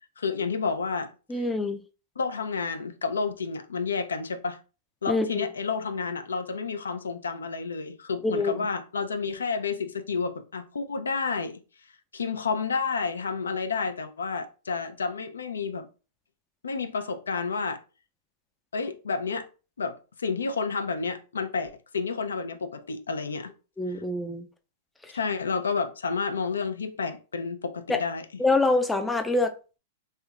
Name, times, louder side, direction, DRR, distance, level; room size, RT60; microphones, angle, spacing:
voice 1, 0.2-1.1 1.4-1.5 2.2-4.6 5.0-11.6 12.1-15.9 16.6-17.8 18.7-19.5 19.8-23.5 23.9-24.0 25.1-28.2, left 5 dB, 90° left, 0.5 m, -30 dB
voice 2, 1.3-1.8 5.1-5.5 8.2-8.6 23.8-24.4 25.0-25.2 27.9-28.0 28.4-29.8, left 2 dB, 10° left, 0.4 m, -26 dB
3.2 x 2.8 x 2.4 m
hypercardioid pair, 120°, 0 cm